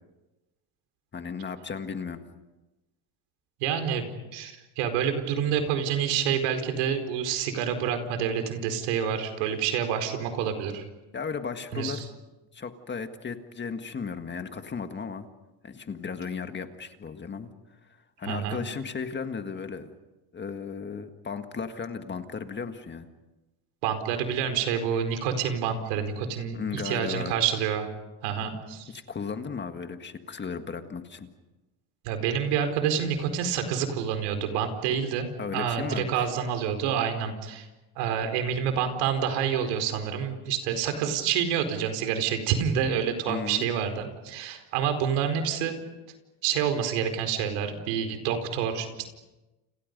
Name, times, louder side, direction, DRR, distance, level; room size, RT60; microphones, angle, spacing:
voice 1, 1.1-2.2 11.1-12.1 12.5-15.3 15.6-17.5 17.9-19.9 20.3-23.1 26.5-27.4 28.9-31.3 35.4-36.3 43.3-43.7, left 5 dB, 20° left, 7 dB, 1.8 m, -35 dB
voice 2, 3.6-10.8 11.7-12.0 18.2-18.6 23.8-27.9 28.2-28.9 32.0-37.7 38.0-45.7 46.4-49.1, right 8 dB, 85° right, 7 dB, 4.7 m, -28 dB
30.0 x 30.0 x 5.4 m, 1.1 s
cardioid pair, 135°, 48 cm